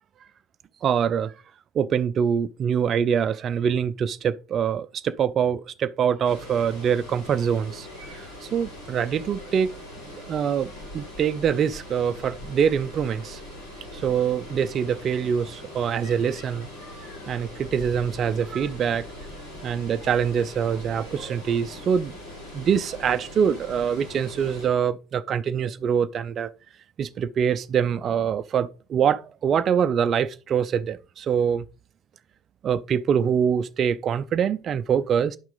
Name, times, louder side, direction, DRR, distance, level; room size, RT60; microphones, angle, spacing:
voice 1, 0.8-1.4 1.7-7.9 8.1-9.7 10.2-13.4 13.9-16.7 17.3-19.1 19.6-22.2 22.5-26.5 27.0-31.7 32.6-35.4, right 7 dB, 45° right, 0.5 m, -24 dB
Water, 6.2-24.7, left 1 dB, 75° left, 5.4 m, -41 dB
9.9 x 5.8 x 3.9 m
hypercardioid pair, 65°, 0 cm